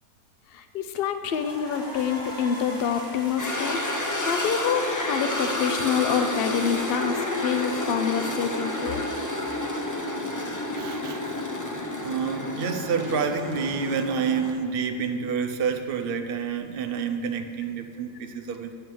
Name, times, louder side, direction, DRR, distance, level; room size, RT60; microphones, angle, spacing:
voice 1, 0.5-3.8 4.2-9.0, left 7 dB, 60° left, 8 dB, 0.6 m, -27 dB
sound 1, 1.3-11.1, equal, 5° left, 2.2 m, -43 dB
sound 2, 3.4-14.5, left 1 dB, 30° left, 0.3 m, -30 dB
voice 2, 10.7-11.2 12.0-18.7, right 6 dB, 55° right, 6 dB, 0.6 m, -28 dB
7.7 x 7.2 x 7.7 m, 2.3 s
omnidirectional pair, 1.6 m